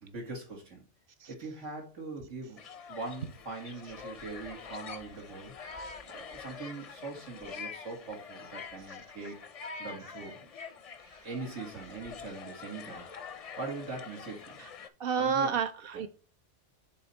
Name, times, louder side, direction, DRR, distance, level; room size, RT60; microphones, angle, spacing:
voice 1, 0.0-0.8 1.3-2.6 2.9-5.5 6.0-9.4 9.8-10.5 11.2-14.6 15.1-15.6 15.9-16.0, right 3 dB, 85° right, -1 dB, 2.5 m, -42 dB
sound 1, 2.6-14.9, left 5 dB, 45° left, 0.4 m, -45 dB
voice 2, 15.0-16.1, right 6 dB, 60° right, 10 dB, 0.7 m, -29 dB
7.1 x 3.4 x 5.4 m, 0.37 s
omnidirectional pair, 1.2 m